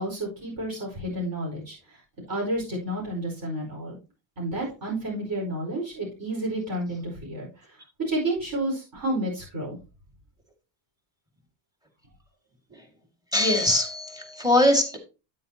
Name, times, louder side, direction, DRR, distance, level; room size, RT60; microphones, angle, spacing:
voice 1, 0.0-2.0 2.3-4.0 4.4-7.5 8.1-9.8, right 1 dB, 45° right, -3 dB, 4.9 m, -30 dB
voice 2, 13.3-15.0, left 1 dB, 10° right, 5 dB, 2.1 m, -22 dB
9.4 x 8.9 x 2.9 m, 0.31 s
cardioid pair, 145°, 48 cm